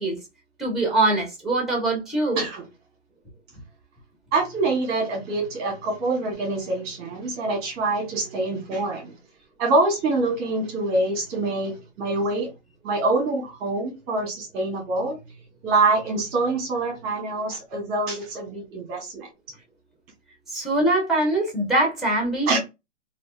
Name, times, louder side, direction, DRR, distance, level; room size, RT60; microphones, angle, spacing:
voice 1, 0.6-2.4 20.5-22.6, right 2 dB, ahead, 0.8 m, -23 dB
voice 2, 4.3-9.1 9.6-12.5 12.8-15.2 15.6-19.3 22.5-22.6, right 2 dB, 25° right, 1.0 m, -25 dB
2.5 x 2.3 x 2.3 m
hypercardioid pair, 135°, 37 cm